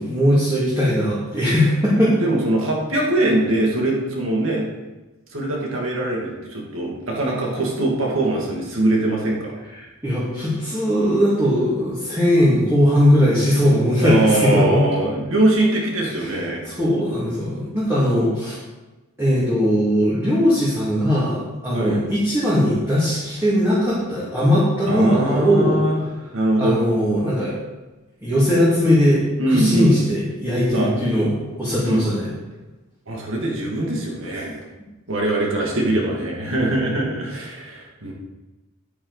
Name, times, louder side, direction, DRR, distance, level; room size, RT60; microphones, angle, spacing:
voice 1, 0.0-2.2 9.8-14.8 16.2-16.4 16.6-18.5 19.2-25.8 26.6-27.5 28.2-32.3, equal, 10° right, -9 dB, 2.3 m, -19 dB
voice 2, 2.0-4.6 5.3-9.5 14.0-16.6 21.7-22.0 24.9-26.0 26.3-26.8 29.4-30.0 30.7-30.9 31.8-32.0 33.1-34.6 35.1-38.1, right 1 dB, 65° right, -2 dB, 2.5 m, -22 dB
9.7 x 9.2 x 4.1 m, 1.1 s
head